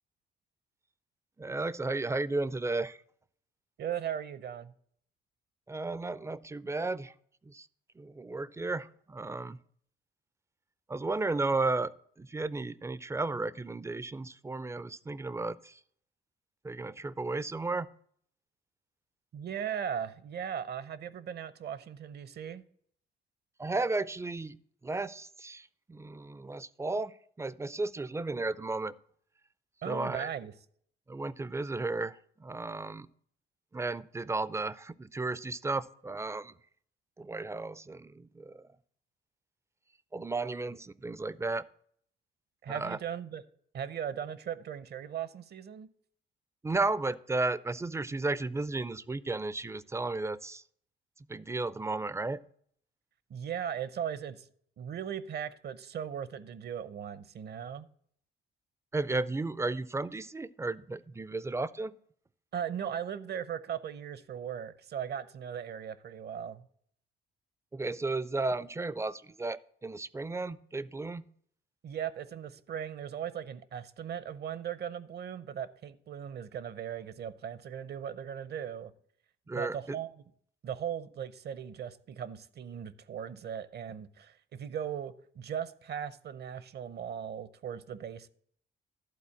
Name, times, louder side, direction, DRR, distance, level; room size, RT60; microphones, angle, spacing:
voice 1, 1.4-3.0 5.7-7.1 7.4-7.7 8.0-9.6 10.9-11.9 12.2-15.8 16.6-17.9 23.6-24.6 24.8-28.9 29.9-30.3 31.1-33.1 33.7-36.5 37.2-38.7 40.1-41.6 42.7-43.0 46.6-50.6 51.3-52.4 58.9-61.9 67.7-71.2 79.5-80.0, right 3 dB, 15° right, 0.4 m, -34 dB
voice 2, 3.8-4.7 19.3-22.6 29.8-30.5 42.6-43.4 43.7-45.9 53.3-54.5 54.8-57.9 62.5-66.6 71.8-78.9 79.5-80.2 80.6-88.3, right 8 dB, 55° right, 0.7 m, -38 dB
11.5 x 4.0 x 7.1 m
cardioid pair, 90°, 20 cm